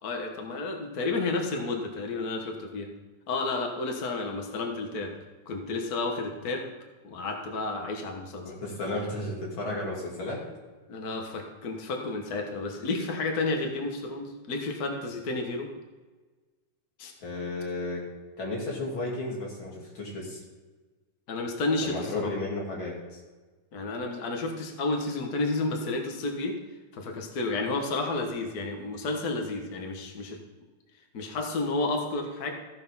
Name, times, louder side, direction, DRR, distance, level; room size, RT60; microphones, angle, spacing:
voice 1, 0.0-2.9 3.3-5.1 5.5-6.7 7.0-8.5 10.9-15.7 17.0-17.1 21.3-22.3 23.7-26.5 26.9-30.4 31.1-32.5, left 3 dB, 80° left, 3 dB, 0.8 m, -31 dB
voice 2, 8.4-10.4 17.2-18.0 18.4-20.4 21.8-23.2, left 2 dB, 40° left, -3 dB, 3.2 m, -33 dB
14.0 x 6.6 x 5.5 m, 1.3 s
omnidirectional pair, 3.8 m